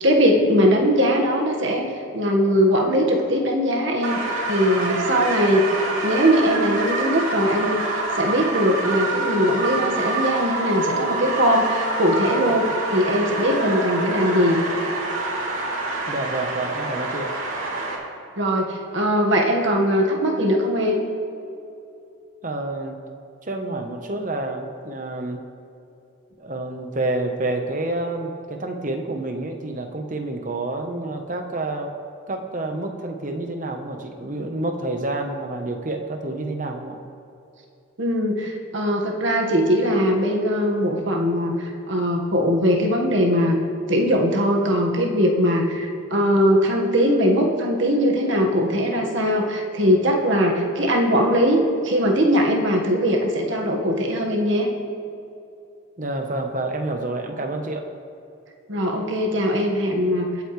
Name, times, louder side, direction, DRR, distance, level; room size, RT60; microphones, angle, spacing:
voice 1, 0.0-1.8 2.1-4.2 4.5-5.7 6.0-14.6 18.4-21.0 38.0-43.6 43.9-54.7 58.7-60.4, equal, 60° right, 0 dB, 1.6 m, -20 dB
sound 1, 4.0-17.9, right 2 dB, 80° right, 2.6 m, -26 dB
voice 2, 16.1-17.3 22.4-23.0 23.4-25.4 26.4-31.9 32.3-37.0 56.0-57.9, right 2 dB, 35° right, 4 dB, 1.1 m, -28 dB
23.5 x 8.2 x 3.3 m, 2.8 s
head